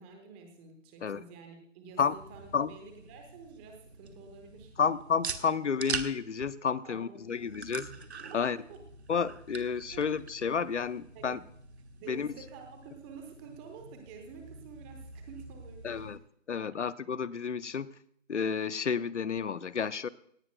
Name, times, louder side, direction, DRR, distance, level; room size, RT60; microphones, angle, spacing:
voice 1, 0.0-4.7 6.8-7.6 8.3-8.8 9.9-10.1 11.1-11.4 11.9-16.1 16.7-16.8, right 5 dB, 10° right, 4 dB, 0.8 m, -49 dB
sound 1, 1.9-16.2, right 5 dB, 60° right, 1.4 m, -44 dB
voice 2, 4.8-7.9 8.3-8.6 9.1-11.4 12.1-12.3 15.8-16.2 16.5-17.9 18.3-20.1, left 6 dB, 65° left, 17 dB, 0.7 m, -31 dB
18.0 x 16.0 x 2.2 m, 0.66 s
figure-of-eight pair, 150°, 38 cm